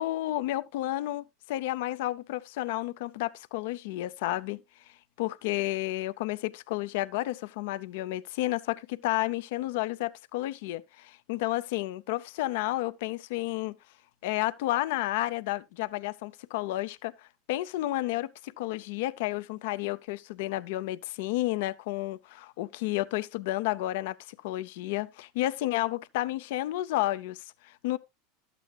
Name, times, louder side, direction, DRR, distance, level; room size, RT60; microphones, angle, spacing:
voice 1, 0.0-4.6 5.2-13.7 14.2-28.0, left 16 dB, 70° left, 0.5 m, -31 dB
12.0 x 8.3 x 2.3 m
hypercardioid pair, 105°, 0 cm